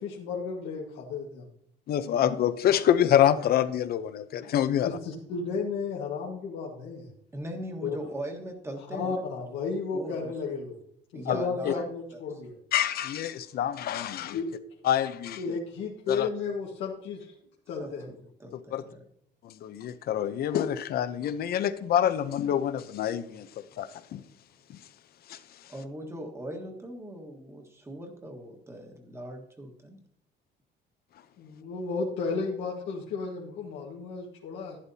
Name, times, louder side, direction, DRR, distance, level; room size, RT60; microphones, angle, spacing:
voice 1, 0.0-1.5 4.4-4.5 4.8-7.1 7.8-7.9 8.9-10.7 11.1-12.5 14.3-14.5 15.4-17.3 17.7-18.0 31.4-34.8, left 4 dB, 90° left, -3 dB, 1.6 m, -33 dB
voice 2, 1.9-4.9 11.3-11.4 11.6-11.7 12.7-14.4 14.8-15.6 16.1-16.3 18.5-18.8 19.4-24.2 24.7-24.8 25.3-25.4, left 10 dB, 55° left, 12 dB, 0.7 m, -26 dB
voice 3, 7.3-9.2 9.9-10.6 11.1-12.2 17.8-19.0 25.7-30.0, right 1 dB, 15° right, 3 dB, 1.5 m, -40 dB
11.5 x 10.5 x 2.8 m, 0.70 s
cardioid pair, 160°, 19 cm